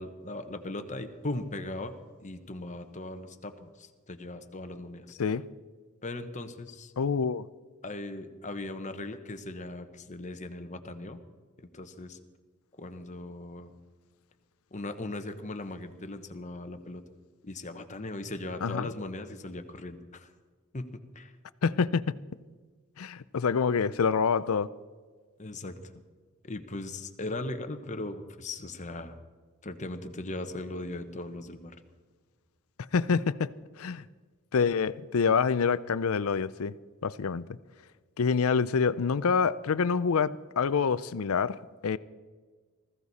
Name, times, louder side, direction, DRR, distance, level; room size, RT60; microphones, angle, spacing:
voice 1, 0.0-1.9 2.2-5.2 6.0-6.9 7.8-11.2 11.6-12.2 12.8-13.7 14.7-17.0 17.4-20.3 20.7-20.9 21.1-21.3 25.4-25.9 26.4-29.2 29.6-31.7, left 2 dB, 35° left, 1.1 m, -38 dB
voice 2, 7.0-7.5 18.6-18.9 21.6-22.1 23.0-24.7 32.9-33.5 33.8-34.0 34.5-36.7 37.0-37.5 38.2-41.6 41.8-42.0, left 5 dB, 65° left, 0.5 m, -26 dB
19.5 x 15.0 x 4.2 m
head